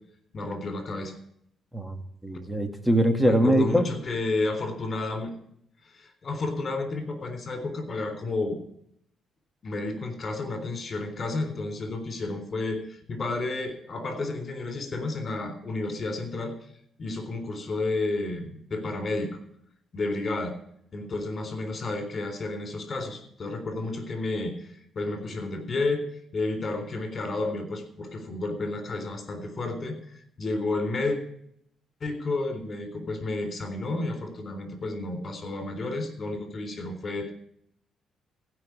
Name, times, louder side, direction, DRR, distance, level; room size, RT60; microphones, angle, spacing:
voice 1, 0.3-1.2 3.3-5.3 5.9-8.6 9.6-16.5 17.0-19.3 19.9-20.5 20.9-26.0 26.3-31.2 32.0-37.3, left 2 dB, 40° left, 6 dB, 3.7 m, -31 dB
voice 2, 1.7-3.9, equal, 5° right, 5 dB, 2.1 m, -23 dB
15.5 x 5.6 x 9.7 m, 0.70 s
cardioid pair, 90°, 0 cm